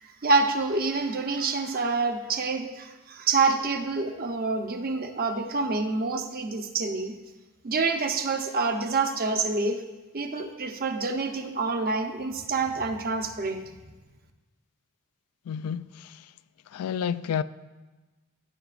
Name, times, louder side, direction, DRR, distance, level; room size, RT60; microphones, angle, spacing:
voice 1, 0.0-7.1 7.6-9.8 10.1-13.6, right 3 dB, 45° right, 0.7 m, -27 dB
voice 2, 15.5-16.3 16.7-17.4, left 8 dB, 85° left, 0.3 m, -30 dB
15.0 x 5.8 x 2.5 m
head